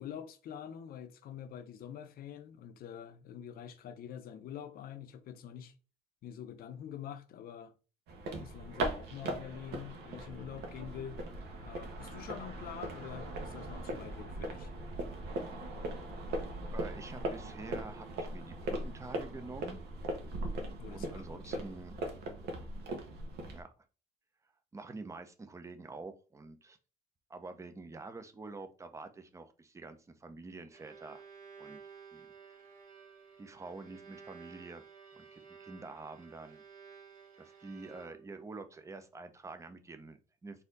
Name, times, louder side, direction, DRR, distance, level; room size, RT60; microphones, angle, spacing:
voice 1, 0.0-5.7 6.2-7.7 8.4-11.2 11.6-14.7 20.8-21.6, left 9 dB, 60° left, 0.7 m, -46 dB
sound 1, 8.1-23.6, right 1 dB, 75° right, 1.0 m, -39 dB
voice 2, 16.7-19.8 20.9-22.0 23.5-23.7 24.7-26.8 27.3-31.2 31.6-31.8 32.1-32.6 33.4-34.8 35.2-36.6 37.4-40.6, right 3 dB, 15° right, 0.6 m, -47 dB
Bowed string instrument, 30.4-38.5, right 6 dB, 55° right, 1.3 m, -54 dB
4.1 x 2.7 x 3.8 m
cardioid pair, 110°, 17 cm